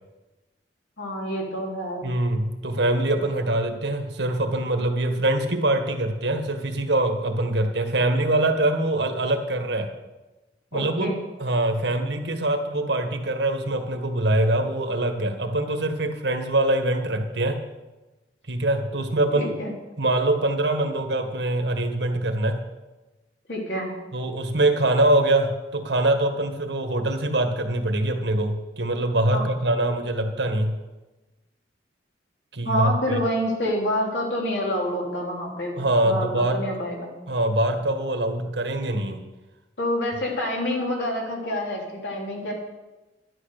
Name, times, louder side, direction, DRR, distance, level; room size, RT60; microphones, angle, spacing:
voice 1, 1.0-2.1 10.7-11.2 19.4-19.7 23.5-23.9 29.3-29.4 32.6-35.7 36.0-37.1 39.8-42.5, equal, 75° left, -1 dB, 3.7 m, -27 dB
voice 2, 2.0-9.9 10.7-11.1 11.4-17.6 18.5-19.5 20.0-22.7 24.1-30.8 32.5-33.2 35.8-36.6 37.3-39.2, right 1 dB, 70° right, 6 dB, 1.7 m, -24 dB
11.0 x 11.0 x 6.6 m, 1.1 s
head